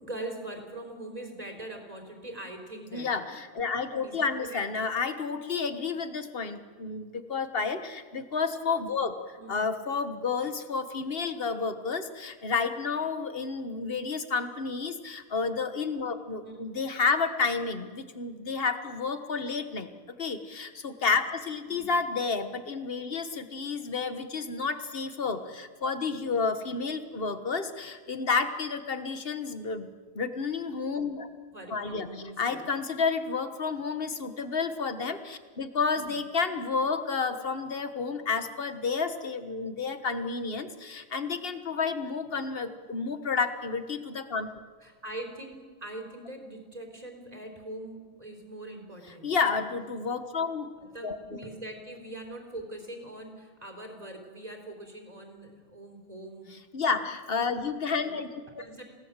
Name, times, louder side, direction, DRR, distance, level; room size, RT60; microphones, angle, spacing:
voice 1, 0.0-3.1 4.0-4.6 9.4-9.6 16.4-16.7 21.7-21.9 31.5-32.6 35.9-36.2 44.8-49.3 50.8-56.6 58.0-58.2 58.5-58.8, right 1 dB, 30° right, 2 dB, 4.1 m, -42 dB
voice 2, 2.9-19.9 20.2-29.9 30.1-31.3 31.7-32.1 32.4-44.5 49.2-50.7 51.0-51.4 56.7-58.3 58.6-58.7, left 4 dB, 50° left, 9 dB, 1.6 m, -30 dB
28.5 x 17.5 x 7.5 m, 1.5 s
omnidirectional pair, 1.3 m